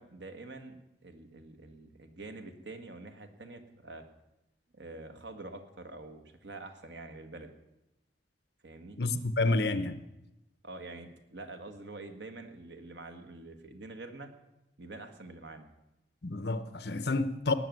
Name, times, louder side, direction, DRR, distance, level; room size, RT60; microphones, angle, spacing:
voice 1, 0.0-4.0 4.7-7.5 8.6-9.0 10.6-14.3 14.8-15.7, right 2 dB, 65° right, 1.7 m, -46 dB
voice 2, 9.0-10.0 16.2-17.6, left 2 dB, 60° left, 0.9 m, -29 dB
19.0 x 6.9 x 9.4 m
head